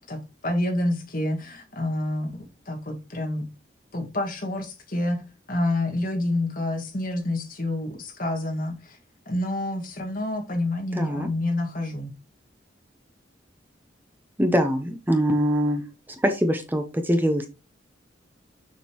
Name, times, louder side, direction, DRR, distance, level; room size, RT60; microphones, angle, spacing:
voice 1, 0.1-2.3 2.7-3.4 3.9-5.2 5.5-9.0 9.3-12.1, left 1 dB, 50° left, 1.9 m, -28 dB
voice 2, 11.0-11.3 14.4-15.8 16.2-17.5, equal, 10° right, 0.8 m, -23 dB
7.0 x 6.5 x 3.0 m
head